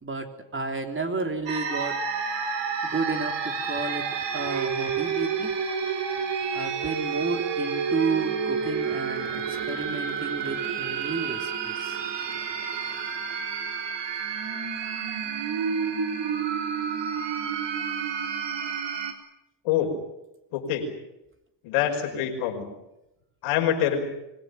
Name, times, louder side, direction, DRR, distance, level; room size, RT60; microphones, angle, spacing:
voice 1, 0.0-2.0 2.8-5.5 6.5-12.0, right 4 dB, 25° right, 5 dB, 3.5 m, -32 dB
sound 1, 1.5-19.1, right 6 dB, 55° right, 3.8 m, -30 dB
voice 2, 20.5-20.8 21.6-22.7 23.4-24.0, left 10 dB, 85° left, 3 dB, 5.4 m, -25 dB
25.5 x 17.5 x 9.3 m, 0.89 s
supercardioid pair, 85°, 50 cm